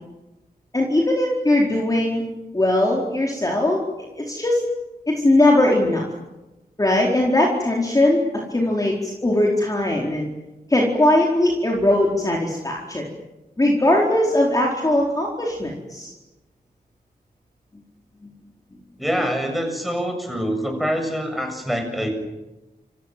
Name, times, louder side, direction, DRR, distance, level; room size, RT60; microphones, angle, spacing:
voice 1, 0.7-2.2 2.5-3.8 4.2-4.6 5.1-6.0 6.8-10.3 10.7-13.0 13.6-16.1, left 1 dB, 20° left, -2 dB, 4.5 m, -20 dB
voice 2, 19.0-22.1, equal, ahead, 4 dB, 7.6 m, -25 dB
29.5 x 26.0 x 7.7 m, 1.0 s
wide cardioid pair, 130°, 16 cm